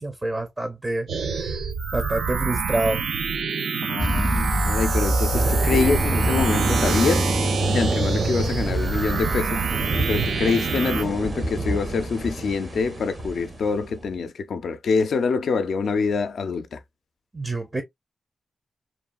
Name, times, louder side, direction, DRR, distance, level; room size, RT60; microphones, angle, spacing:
voice 1, 0.0-1.7 1.9-3.0 17.3-17.8, right 2 dB, 30° right, 0.6 m, -27 dB
sound 1, 1.1-11.0, right 5 dB, 85° right, 0.3 m, -26 dB
voice 2, 3.8-7.3 7.7-16.8, left 5 dB, 80° left, 0.3 m, -25 dB
sound 2, 4.0-9.4, equal, 5° left, 0.4 m, -26 dB
sound 3, 5.3-14.1, right 2 dB, 50° right, 0.9 m, -29 dB
3.1 x 2.3 x 2.2 m
cardioid pair, 50°, 0 cm